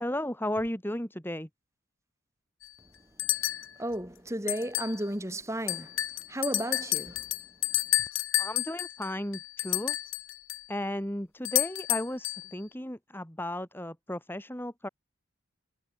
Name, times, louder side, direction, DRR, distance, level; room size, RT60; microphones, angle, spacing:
voice 1, 0.0-1.5 8.4-10.0 10.7-14.9, left 1 dB, 10° left, 2.6 m, -34 dB
sound 1, 2.6-2.7 3.2-3.7 4.5-5.0 5.3-5.4 5.7-10.6 11.4-12.5, left 15 dB, 80° left, 3.3 m, -30 dB
voice 2, 3.8-6.0 6.3-7.2, right 1 dB, 15° right, 6.5 m, -33 dB
head